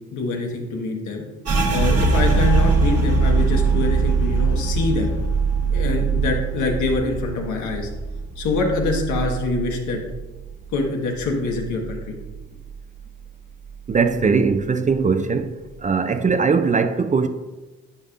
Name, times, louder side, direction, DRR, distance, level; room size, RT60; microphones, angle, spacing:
voice 1, 0.1-1.2 1.7-5.1 5.7-7.9 8.4-10.0 10.7-12.1, left 3 dB, 80° left, 1.3 m, -25 dB
sound 1, 1.4-10.9 11.1-12.4 12.7-13.2 13.6-14.2, right 4 dB, 55° right, 1.1 m, -22 dB
voice 2, 13.9-15.6 15.8-17.3, right 5 dB, 25° right, 0.4 m, -20 dB
9.5 x 5.3 x 2.4 m
cardioid pair, 90°, 30 cm